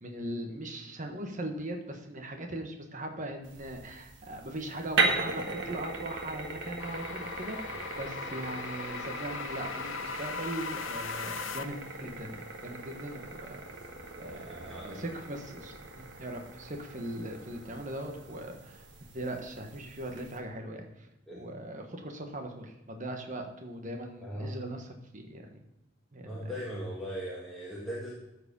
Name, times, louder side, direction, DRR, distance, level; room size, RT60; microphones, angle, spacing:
voice 1, 0.0-13.6 14.2-18.9 19.1-25.6 26.1-26.5, right 1 dB, 40° right, 3 dB, 1.3 m, -40 dB
sound 1, 3.4-20.4, right 3 dB, 60° right, 1.5 m, -38 dB
sound 2, 6.8-11.9, left 5 dB, 75° left, 0.6 m, -39 dB
voice 2, 7.7-8.0 13.5-15.1 21.3-21.5 24.2-24.5 26.2-28.1, equal, ahead, -8 dB, 1.7 m, -40 dB
13.0 x 4.9 x 5.3 m, 0.94 s
head